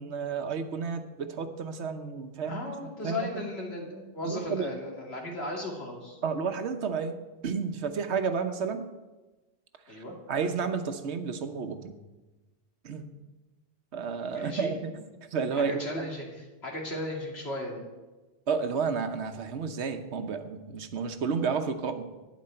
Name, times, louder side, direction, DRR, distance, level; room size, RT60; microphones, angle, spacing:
voice 1, 0.0-2.6 3.0-3.3 4.2-4.7 6.2-7.2 7.4-8.9 9.9-11.9 12.8-13.1 13.9-15.0 15.3-16.1 18.5-22.1, right 5 dB, 80° right, 8 dB, 1.2 m, -31 dB
voice 2, 2.5-6.2 9.9-10.2 14.3-14.8 15.5-17.8, left 1 dB, 70° left, -1 dB, 2.5 m, -36 dB
11.5 x 9.4 x 4.4 m, 1.2 s
omnidirectional pair, 1.1 m